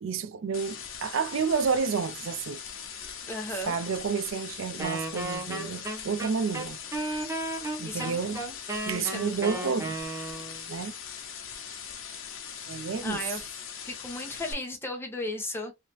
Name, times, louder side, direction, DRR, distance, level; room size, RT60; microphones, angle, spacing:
voice 1, 0.0-2.6 3.7-6.8 7.8-8.4 8.9-9.9 10.7-10.9 12.7-13.2, right 5 dB, 75° right, 0.4 m, -30 dB
sound 1, 0.5-14.5, left 7 dB, 75° left, 0.8 m, -41 dB
voice 2, 3.3-3.8 7.8-8.5 9.0-9.8 13.0-13.6 13.9-15.7, left 1 dB, 10° left, 1.0 m, -36 dB
Wind instrument woodwind instrument, 4.8-10.6, right 2 dB, 15° right, 0.8 m, -34 dB
3.2 x 2.7 x 3.0 m
head